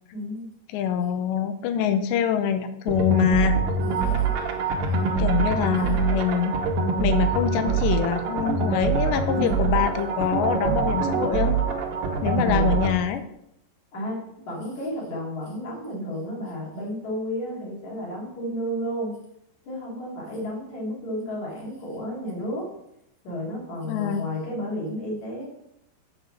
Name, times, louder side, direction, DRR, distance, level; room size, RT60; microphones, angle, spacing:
voice 1, 0.1-0.5 3.8-4.2 9.3-9.6 12.4-12.8 13.9-14.2 14.5-19.2 19.6-22.7 23.2-25.5, equal, 45° left, -4 dB, 3.5 m, -32 dB
voice 2, 0.7-3.6 5.2-6.6 7.0-11.6 12.2-13.2 23.8-24.3, left 9 dB, 90° left, 9 dB, 2.9 m, -25 dB
sound 1, 2.9-13.0, right 5 dB, 70° right, 2.3 m, -24 dB
8.0 x 5.4 x 6.2 m, 0.77 s
omnidirectional pair, 5.0 m